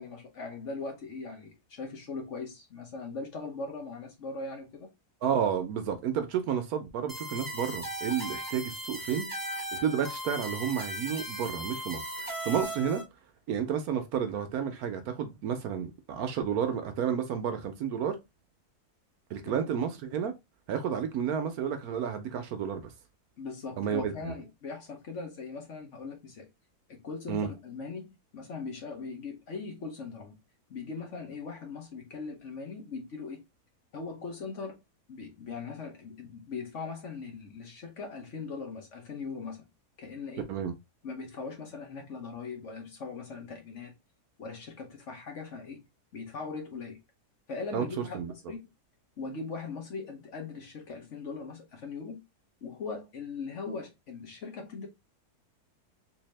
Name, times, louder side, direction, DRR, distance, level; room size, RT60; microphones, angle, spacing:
voice 1, 0.0-4.9 19.4-19.7 23.4-26.5 26.9-30.4 30.7-33.4 33.9-34.8 35.1-39.7 40.0-40.5 41.0-43.9 44.4-45.8 46.1-47.0 47.5-48.6 49.2-52.2 52.6-54.9, left 4 dB, 55° left, 1.1 m, -40 dB
voice 2, 5.2-13.0 13.5-18.2 19.3-20.3 20.7-22.9 23.8-24.3 27.3-27.5 40.5-40.7 47.7-47.9 48.1-48.3, right 8 dB, 75° right, 1.1 m, -31 dB
sound 1, 7.1-13.0, right 1 dB, 20° right, 0.6 m, -37 dB
3.5 x 2.7 x 3.1 m
omnidirectional pair, 1.7 m